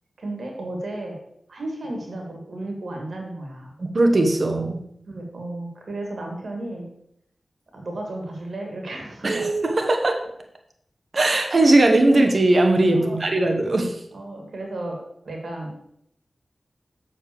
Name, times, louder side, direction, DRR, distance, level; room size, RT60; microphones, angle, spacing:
voice 1, 0.2-1.2 1.5-3.7 5.1-6.9 7.7-9.5 12.9-13.2 14.1-15.0 15.2-15.8, right 1 dB, 75° right, 1 dB, 2.0 m, -33 dB
voice 2, 3.8-4.8 9.2-10.1 11.1-13.9, right 2 dB, 60° right, 3 dB, 1.2 m, -19 dB
6.9 x 4.2 x 6.7 m, 0.75 s
cardioid pair, 40°, 0 cm